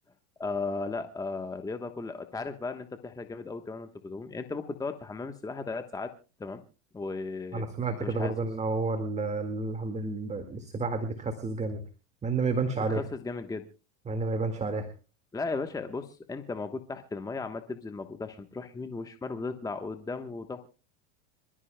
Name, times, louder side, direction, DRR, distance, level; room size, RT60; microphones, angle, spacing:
voice 1, 0.4-6.1 6.4-6.6 6.9-7.6 8.0-8.3 12.9-13.6 15.3-20.7, left 3 dB, 10° left, 7 dB, 1.1 m, -36 dB
voice 2, 7.5-11.8 12.2-13.0 14.1-14.9, right 3 dB, 20° right, 7 dB, 1.9 m, -30 dB
26.5 x 14.0 x 2.2 m, 0.32 s
hypercardioid pair, 110°, 34 cm